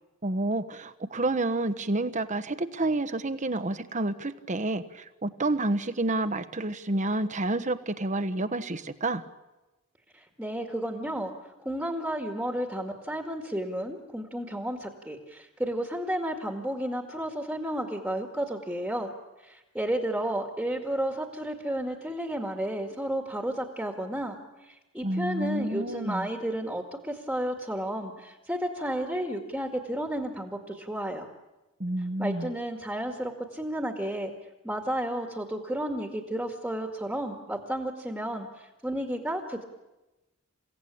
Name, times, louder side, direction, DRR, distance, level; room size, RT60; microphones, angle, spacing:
voice 1, 0.2-9.2 25.0-26.3 31.8-32.5, right 2 dB, 35° right, 10 dB, 1.2 m, -29 dB
voice 2, 10.1-11.3 11.6-19.1 19.4-24.4 24.6-31.3 32.2-34.3 34.6-39.6, right 1 dB, 5° right, 2 dB, 2.0 m, -32 dB
29.5 x 17.0 x 8.7 m, 1.1 s
head